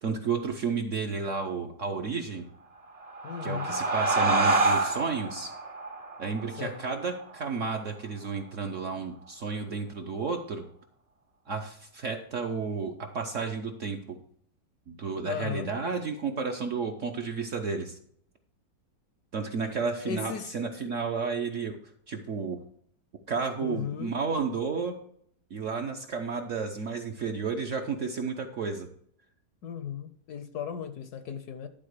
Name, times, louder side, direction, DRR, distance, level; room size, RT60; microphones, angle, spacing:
voice 1, 0.0-2.4 3.4-5.5 6.2-10.6 11.5-14.2 14.9-18.0 19.3-21.8 22.1-22.6 23.3-25.0 25.5-28.9, right 5 dB, 55° right, 4 dB, 0.9 m, -32 dB
sound 1, 2.9-8.1, right 2 dB, 35° right, 0.6 m, -28 dB
voice 2, 3.2-3.8 6.6-6.8 15.2-15.7 20.0-20.5 23.6-24.1 29.6-31.7, left 8 dB, 65° left, 10 dB, 1.0 m, -36 dB
11.5 x 3.9 x 6.6 m, 0.66 s
omnidirectional pair, 2.0 m